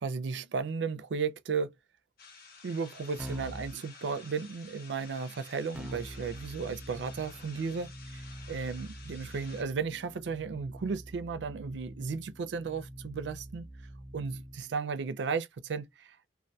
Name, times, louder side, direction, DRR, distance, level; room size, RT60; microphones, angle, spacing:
voice 1, 0.0-1.7 2.6-13.6 14.1-16.3, right 5 dB, 80° right, 0.4 m, -35 dB
sound 1, 2.2-9.6, left 5 dB, 55° left, 0.7 m, -52 dB
Keyboard (musical), 3.2-3.7 5.7-14.6, equal, 5° right, 0.6 m, -45 dB
2.2 x 2.1 x 2.7 m
head